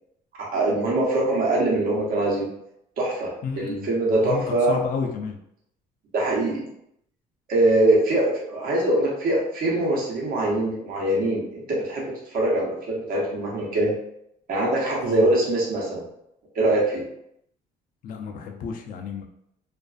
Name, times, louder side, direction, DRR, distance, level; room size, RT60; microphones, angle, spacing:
voice 1, 0.4-2.5 3.0-3.3 3.5-4.8 6.1-6.6 7.5-13.9 14.5-16.0 16.5-17.0, right 2 dB, 60° right, -3 dB, 0.9 m, -23 dB
voice 2, 3.4-4.4 4.7-5.4 15.0-15.3 18.0-19.2, left 5 dB, 55° left, 2 dB, 0.4 m, -31 dB
2.5 x 2.4 x 2.3 m, 0.77 s
cardioid pair, 110°, 17 cm